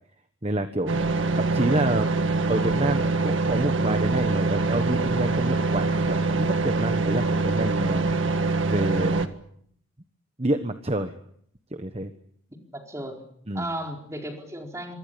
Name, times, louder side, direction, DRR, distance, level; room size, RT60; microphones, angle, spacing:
voice 1, 0.4-1.0 1.3-2.1 2.5-8.1 8.6-9.3 10.4-11.1 11.7-12.1 13.5-13.7, right 1 dB, 30° right, 8 dB, 1.3 m, -28 dB
sound 1, 0.9-9.3, right 3 dB, 70° right, 1.8 m, -24 dB
voice 2, 12.7-13.3 13.5-14.9, right 1 dB, 15° right, 2 dB, 4.6 m, -35 dB
27.0 x 24.0 x 7.0 m, 0.68 s
head